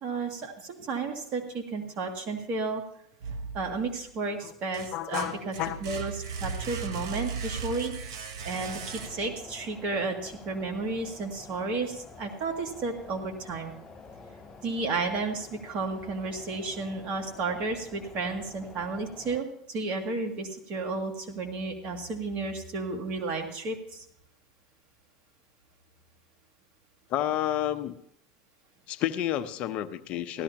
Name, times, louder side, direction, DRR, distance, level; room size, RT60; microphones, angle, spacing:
voice 1, 0.0-2.8 3.5-5.5 5.8-13.7 14.6-24.0, right 3 dB, 50° right, 3 dB, 2.4 m, -32 dB
sound 1, 3.2-4.0 4.5-9.5, right 5 dB, 70° right, 1.3 m, -37 dB
voice 2, 4.9-5.8 27.1-28.0 28.9-30.4, left 12 dB, 50° left, 11 dB, 0.8 m, -30 dB
sound 2, 8.5-19.4, left 4 dB, 20° left, 3.6 m, -49 dB
16.5 x 13.0 x 2.9 m, 0.71 s
hypercardioid pair, 90°, 3 cm